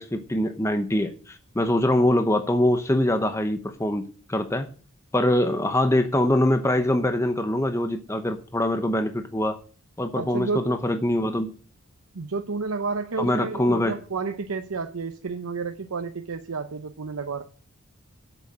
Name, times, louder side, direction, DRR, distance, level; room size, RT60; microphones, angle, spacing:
voice 1, 0.0-4.7 5.1-9.6 10.0-11.5 13.2-14.0, left 1 dB, 15° left, 0.8 m, -23 dB
voice 2, 10.2-10.8 12.1-17.4, right 4 dB, 85° right, 0.8 m, -31 dB
7.9 x 7.0 x 8.5 m
head